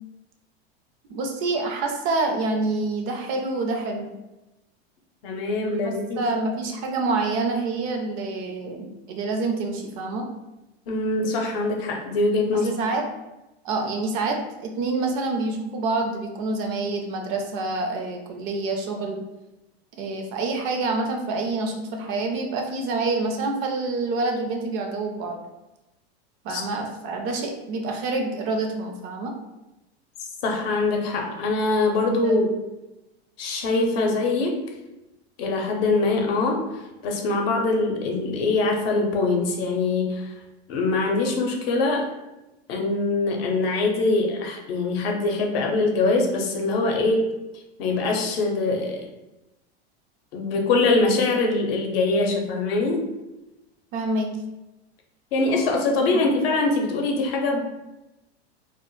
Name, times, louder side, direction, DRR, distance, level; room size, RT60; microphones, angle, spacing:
voice 1, 1.1-4.1 5.8-10.3 12.5-13.0 13.6-19.2 20.0-25.4 26.4-29.3 32.2-32.4 33.9-34.0 53.9-54.3 56.1-56.3, right 3 dB, 40° right, 3 dB, 0.4 m, -27 dB
voice 2, 5.2-6.2 10.9-12.7 26.5-26.6 30.4-32.5 33.4-34.7 35.4-40.4 40.7-42.1 42.7-47.2 47.8-49.1 50.3-53.0 55.3-57.6, left 3 dB, 60° left, 2 dB, 0.6 m, -23 dB
2.1 x 2.0 x 3.0 m, 0.98 s
hypercardioid pair, 110°, 33 cm